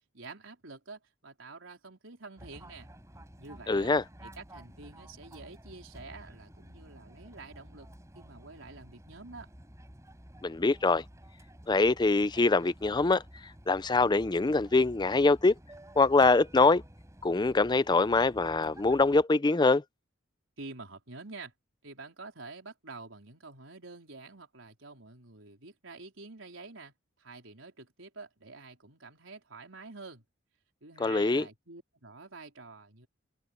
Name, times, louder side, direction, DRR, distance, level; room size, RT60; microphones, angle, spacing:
voice 1, 0.1-2.9 3.4-3.9 4.2-7.9 8.2-9.5 20.6-21.5 21.8-26.9 27.2-30.2 30.8-33.1, right 3 dB, 85° right, 4.2 m, -48 dB
Fixed-wing aircraft airplane, 2.4-19.2, right 1 dB, 15° right, 4.5 m, -52 dB
voice 2, 3.7-4.0 10.4-11.0 11.7-13.2 13.7-15.5 16.0-16.8 17.2-19.8 31.0-31.4, left 3 dB, 20° left, 0.5 m, -24 dB
head